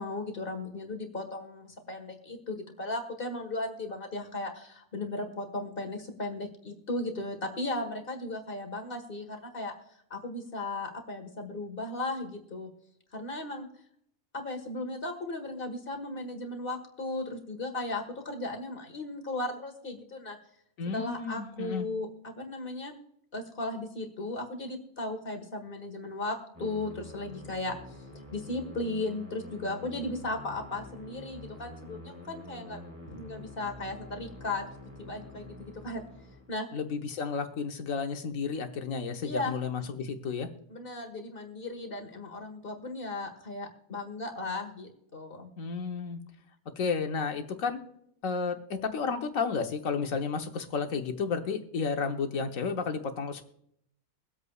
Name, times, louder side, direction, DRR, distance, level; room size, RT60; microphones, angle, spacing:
voice 1, 0.0-9.7 10.1-12.7 13.1-13.7 14.3-20.4 20.9-22.9 23.3-27.7 28.3-32.8 33.1-34.6 35.0-36.0 36.5-36.7 39.2-39.6 40.7-45.5, left 2 dB, 35° left, 4 dB, 1.7 m, -36 dB
voice 2, 20.8-21.9 36.7-40.5 45.6-46.2 46.8-47.8 48.2-53.5, left 5 dB, 65° left, 6 dB, 1.4 m, -32 dB
sound 1, 26.5-36.5, left 1 dB, 10° right, 2.1 m, -47 dB
23.5 x 8.1 x 2.4 m, 0.72 s
omnidirectional pair, 1.6 m